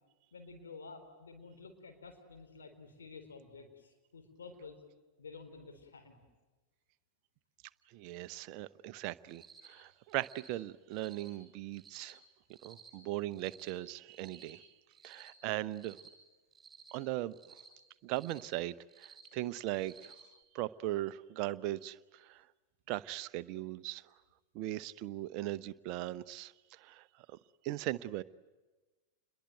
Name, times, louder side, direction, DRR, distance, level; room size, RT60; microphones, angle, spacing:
voice 1, 0.3-4.8 5.2-6.2, left 4 dB, 70° left, 4 dB, 4.0 m, -51 dB
voice 2, 7.9-12.2 12.6-14.7 15.0-16.0 16.9-17.4 18.0-20.1 20.5-22.4 22.9-24.0 24.5-27.0 27.6-28.2, right 15 dB, 45° right, 15 dB, 0.8 m, -39 dB
Cricket, 9.3-9.7 10.1-10.5 10.9-11.3 11.7-12.1 12.5-12.9 13.3-13.7 14.1-14.5 14.9-15.3 15.7-16.1 16.5-16.9 17.3-17.7 18.1-18.5 18.9-19.3 19.7-20.2, right 5 dB, 20° right, 7.5 m, -57 dB
28.5 x 22.0 x 9.3 m, 1.2 s
figure-of-eight pair, 90°, 0 cm